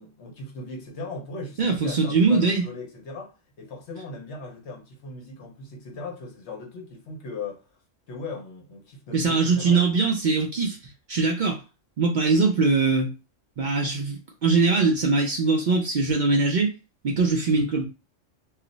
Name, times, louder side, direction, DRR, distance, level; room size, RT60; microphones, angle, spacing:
voice 1, 0.0-7.6 8.1-10.0, left 3 dB, 60° left, 0.9 m, -38 dB
voice 2, 1.6-2.6 9.1-10.8 11.1-11.6 12.0-13.1 13.6-16.8 17.0-17.9, right 4 dB, 80° right, 0.4 m, -22 dB
2.4 x 2.0 x 3.8 m
omnidirectional pair, 1.4 m